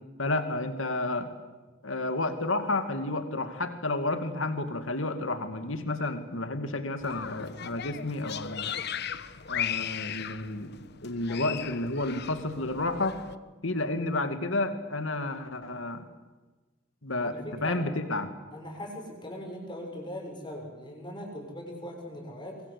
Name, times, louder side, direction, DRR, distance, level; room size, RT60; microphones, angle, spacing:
voice 1, 0.2-1.3 1.8-8.7 9.5-10.7 11.0-13.2 13.6-16.0 17.0-18.3, left 2 dB, 85° left, 8 dB, 2.4 m, -31 dB
sound 1, 7.0-13.4, left 9 dB, 60° left, 1.1 m, -37 dB
voice 2, 17.2-17.8 18.5-22.6, left 1 dB, 25° left, 1 dB, 7.1 m, -40 dB
24.5 x 23.5 x 8.3 m, 1.2 s
head